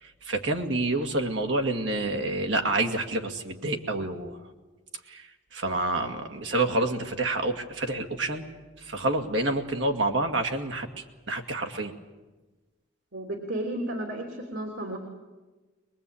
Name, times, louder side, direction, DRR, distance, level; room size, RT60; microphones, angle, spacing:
voice 1, 0.0-4.4 5.1-8.5 8.8-11.9, right 2 dB, 70° right, 3 dB, 2.1 m, -28 dB
voice 2, 13.1-15.0, right 1 dB, 90° right, 2 dB, 3.1 m, -33 dB
22.5 x 22.0 x 8.6 m, 1.2 s
head